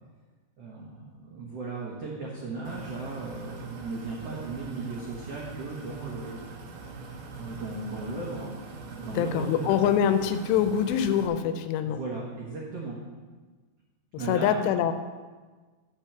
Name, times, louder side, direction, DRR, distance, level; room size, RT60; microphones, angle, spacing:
voice 1, 0.6-6.5 7.4-8.5 8.9-9.9 11.8-13.0 14.2-14.7, right 3 dB, 85° right, -3 dB, 1.3 m, -36 dB
sound 1, 2.6-11.3, right 3 dB, 65° right, 2.2 m, -43 dB
voice 2, 9.1-12.0 14.3-14.9, left 9 dB, 90° left, 9 dB, 2.8 m, -24 dB
9.0 x 6.0 x 6.6 m, 1.4 s
omnidirectional pair, 4.8 m